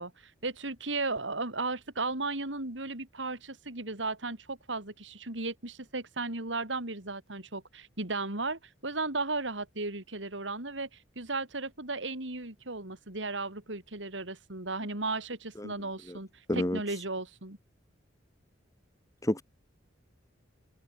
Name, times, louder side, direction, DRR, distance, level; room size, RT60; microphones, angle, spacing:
voice 1, 0.0-16.3 16.5-17.6, right 3 dB, 85° right, 4.4 m, -35 dB
voice 2, 16.5-16.8 19.2-19.4, left 1 dB, 20° left, 2.0 m, -29 dB
head